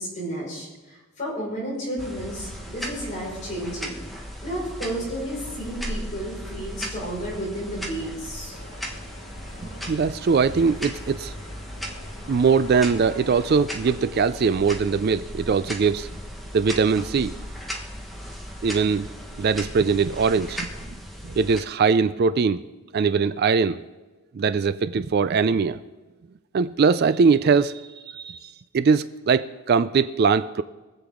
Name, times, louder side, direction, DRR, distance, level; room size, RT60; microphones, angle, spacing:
voice 1, 0.0-4.0 4.4-8.6, right 1 dB, 35° left, -5 dB, 5.4 m, -32 dB
sound 1, 2.0-21.6, equal, ahead, 1.2 m, -37 dB
sound 2, 8.5-13.6, left 1 dB, 75° left, 2.0 m, -45 dB
voice 2, 9.9-11.3 12.3-16.1 16.5-17.4 18.6-19.1 19.4-20.7 21.4-22.6 22.9-23.8 24.3-25.8 26.5-30.6, right 5 dB, 45° right, 14 dB, 0.3 m, -21 dB
23.5 x 7.9 x 3.7 m, 1.2 s
head